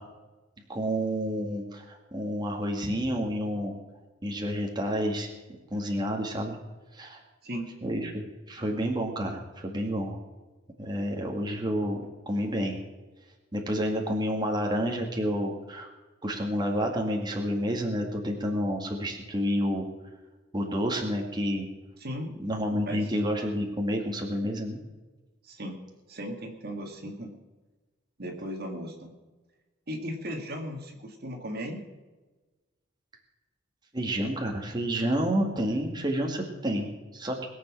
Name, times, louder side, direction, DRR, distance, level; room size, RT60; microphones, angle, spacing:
voice 1, 0.7-3.8 4.2-5.3 5.7-6.6 6.9-7.2 7.8-10.2 10.8-12.8 13.5-15.9 16.2-19.9 20.5-21.7 22.4-24.8 33.9-37.5, equal, 20° right, 1 dB, 2.0 m, -29 dB
voice 2, 22.0-22.3 22.9-23.1 25.4-25.8 26.1-27.3 28.2-29.1 29.9-31.8, equal, 55° right, 3 dB, 2.1 m, -36 dB
21.5 x 7.7 x 6.1 m, 1.2 s
head